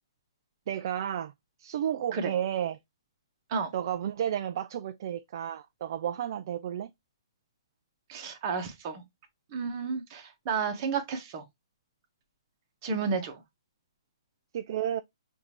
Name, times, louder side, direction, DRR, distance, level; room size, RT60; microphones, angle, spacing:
voice 1, 0.7-1.3 1.6-2.8 3.7-6.9 14.5-15.0, right 10 dB, 50° right, 0.3 m, -32 dB
voice 2, 8.1-9.0 9.5-11.4 12.8-13.4, right 5 dB, 35° right, 1.1 m, -32 dB
5.0 x 2.6 x 2.9 m
hypercardioid pair, 145°, 3 cm